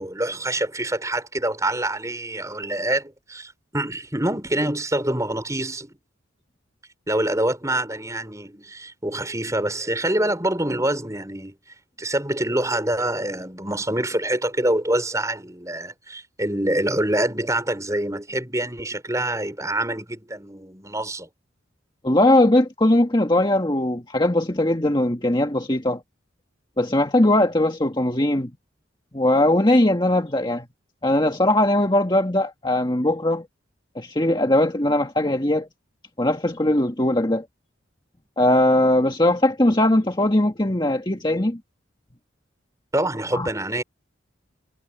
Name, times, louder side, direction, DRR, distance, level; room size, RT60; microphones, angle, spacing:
voice 1, 0.0-5.9 7.1-11.5 12.0-21.3 42.9-43.8, right 1 dB, 15° right, 5.6 m, -25 dB
voice 2, 22.0-26.0 26.8-28.5 29.1-30.6 31.0-33.4 33.9-35.7 36.2-37.4 38.4-41.6 43.3-43.5, left 1 dB, 20° left, 1.8 m, -20 dB
head